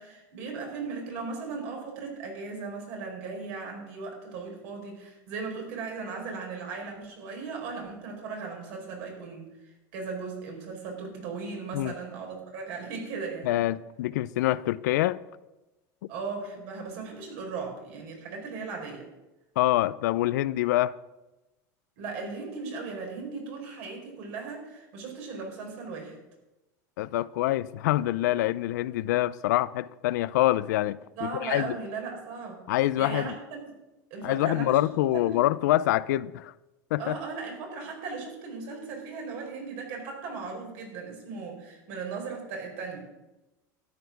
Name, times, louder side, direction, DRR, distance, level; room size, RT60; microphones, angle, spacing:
voice 1, 0.0-13.6 16.1-19.1 22.0-26.2 31.2-32.6 33.0-33.7 34.1-34.8 35.1-35.4 37.0-43.0, right 4 dB, 65° right, 4.9 m, -37 dB
voice 2, 13.4-15.2 19.6-20.9 27.0-31.8 32.7-33.3 34.2-36.5 36.9-37.2, left 15 dB, 90° left, 0.5 m, -26 dB
13.0 x 9.3 x 6.0 m
supercardioid pair, 135°, 9 cm